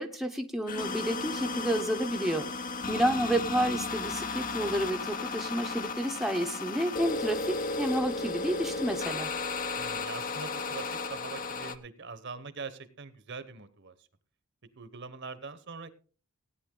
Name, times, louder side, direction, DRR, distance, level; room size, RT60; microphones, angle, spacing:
voice 1, 0.0-2.5 2.9-9.3, equal, ahead, 4 dB, 0.8 m, -30 dB
sound 1, 0.7-11.8, left 4 dB, 35° left, 0.7 m, -34 dB
voice 2, 9.7-14.1 14.8-15.9, right 4 dB, 50° right, 13 dB, 1.0 m, -43 dB
16.5 x 9.3 x 3.8 m, 0.39 s
head